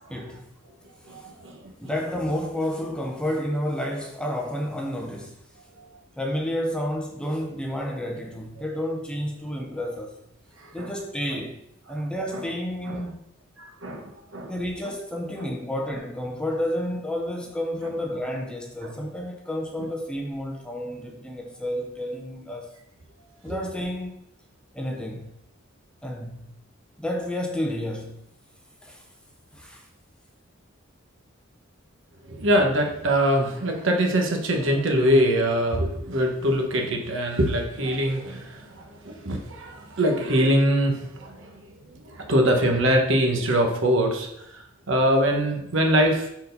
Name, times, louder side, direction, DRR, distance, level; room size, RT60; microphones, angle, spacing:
voice 1, 0.1-0.5 1.2-1.3 1.8-5.3 6.2-10.2 10.7-11.6 11.9-13.3 14.5-22.7 23.4-24.1 24.7-25.3 26.0-26.5 27.0-28.2 28.8-29.0 29.5-29.9, equal, 5° left, 0.6 m, -30 dB
voice 2, 1.1-1.6 10.8-10.9 12.3-12.4 12.9-13.0 13.6-14.5 23.5-23.6 32.3-41.4 42.0-44.3 44.9-46.3, equal, 65° right, 1.0 m, -23 dB
4.6 x 4.1 x 5.2 m
head